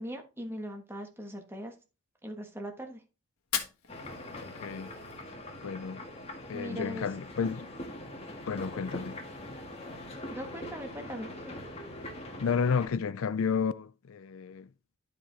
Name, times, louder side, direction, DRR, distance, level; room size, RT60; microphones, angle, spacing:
voice 1, 0.0-1.7 2.2-3.0 6.5-7.1 10.3-11.5, equal, 10° right, 1.3 m, -40 dB
Fire, 3.4-5.4, left 9 dB, 80° left, 1.5 m, -39 dB
sound 1, 3.9-12.9, left 1 dB, 25° left, 1.6 m, -43 dB
voice 2, 4.4-4.9 5.6-6.0 6.5-7.7 8.5-9.2 12.4-14.7, left 6 dB, 65° left, 0.4 m, -31 dB
11.5 x 5.1 x 3.9 m
head